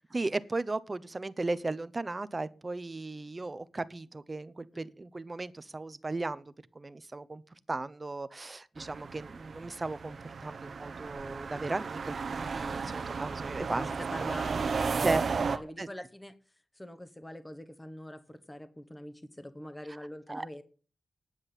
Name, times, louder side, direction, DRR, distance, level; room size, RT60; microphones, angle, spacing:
voice 1, 0.1-7.4 7.7-13.9 14.2-14.3 15.0-15.2 15.5-15.9 19.9-20.0 20.3-20.5, right 2 dB, 25° right, 0.7 m, -36 dB
sound 1, 8.8-15.6, right 5 dB, 55° right, 0.9 m, -34 dB
voice 2, 13.6-16.3 16.7-20.6, equal, 10° left, 1.0 m, -44 dB
10.0 x 7.4 x 8.3 m
wide cardioid pair, 110°, 0 cm